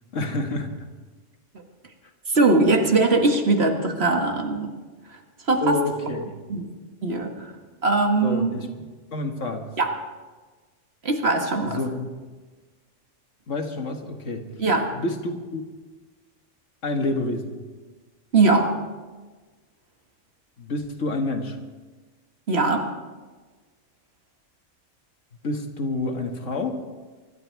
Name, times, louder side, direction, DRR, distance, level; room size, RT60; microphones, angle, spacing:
voice 1, 0.1-0.7 5.6-6.4 8.2-8.7 9.1-9.6 11.6-12.1 13.5-14.5 14.9-15.6 16.8-17.6 20.6-21.6 25.4-26.7, left 2 dB, 75° left, 4 dB, 1.9 m, -28 dB
voice 2, 2.3-4.7 5.5-5.8 6.5-6.7 7.0-7.5 7.8-8.6 9.8-9.9 11.0-11.8 14.6-14.9 18.3-18.8 22.5-22.9, right 3 dB, 55° right, 3 dB, 1.9 m, -21 dB
24.5 x 12.0 x 4.6 m, 1.3 s
omnidirectional pair, 1.3 m